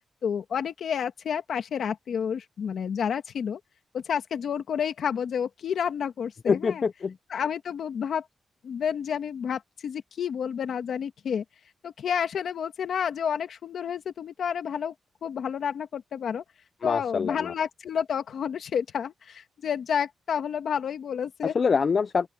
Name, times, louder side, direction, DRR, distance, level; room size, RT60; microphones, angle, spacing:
voice 1, 0.2-3.6 3.9-6.8 7.3-8.3 8.6-11.4 11.8-14.9 15.2-16.4 16.8-21.6, left 7 dB, 65° left, 1.9 m, -30 dB
voice 2, 6.5-7.2 16.8-17.5 21.5-22.3, left 5 dB, 40° left, 0.3 m, -25 dB
open air
wide cardioid pair, 160°, 0 cm